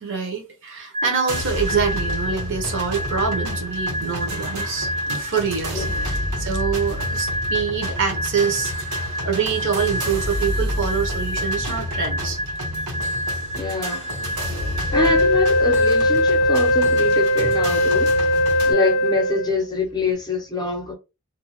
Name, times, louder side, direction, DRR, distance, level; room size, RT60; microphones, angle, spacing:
voice 1, 0.0-8.7 9.2-12.4, right 6 dB, 55° right, 0.8 m, -25 dB
sound 1, 0.9-16.5, equal, 35° right, 0.5 m, -30 dB
sound 2, 1.3-18.7, left 1 dB, 80° right, 1.4 m, -30 dB
voice 2, 13.6-14.1 14.9-18.1 18.7-20.9, left 3 dB, 20° left, 0.7 m, -25 dB
Wind instrument woodwind instrument, 14.9-19.7, left 1 dB, 60° left, 0.4 m, -19 dB
2.6 x 2.2 x 3.0 m
head